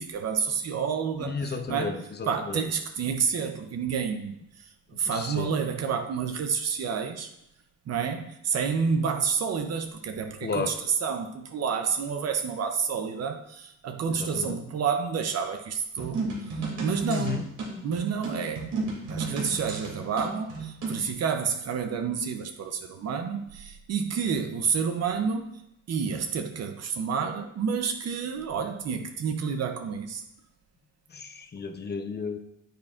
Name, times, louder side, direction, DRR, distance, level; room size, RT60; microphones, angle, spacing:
voice 1, 0.0-1.9 2.3-7.3 7.9-17.5 17.8-18.7 19.1-25.5 25.9-30.2, right 6 dB, 55° right, 6 dB, 0.7 m, -29 dB
voice 2, 1.2-2.6 5.0-5.5 10.4-10.8 14.1-14.6 17.1-17.4 31.1-32.4, left 5 dB, 35° left, 7 dB, 0.8 m, -33 dB
sound 1, 16.0-21.0, right 3 dB, 80° right, 2.8 m, -33 dB
9.0 x 7.4 x 2.5 m, 0.81 s
cardioid pair, 90°, 30 cm